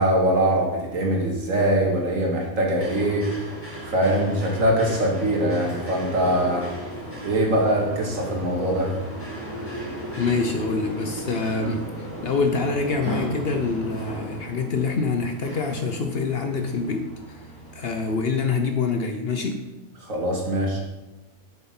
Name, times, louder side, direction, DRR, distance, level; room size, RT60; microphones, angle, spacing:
voice 1, 0.0-3.3 3.8-6.7 7.2-8.9 20.0-20.8, right 1 dB, 70° right, -1 dB, 2.2 m, -22 dB
sound 1, 2.8-18.2, equal, 10° right, 3.0 m, -36 dB
voice 2, 10.2-17.4 17.7-19.6, left 4 dB, 55° left, 5 dB, 0.8 m, -26 dB
7.7 x 7.1 x 4.4 m, 1.0 s
omnidirectional pair, 1.4 m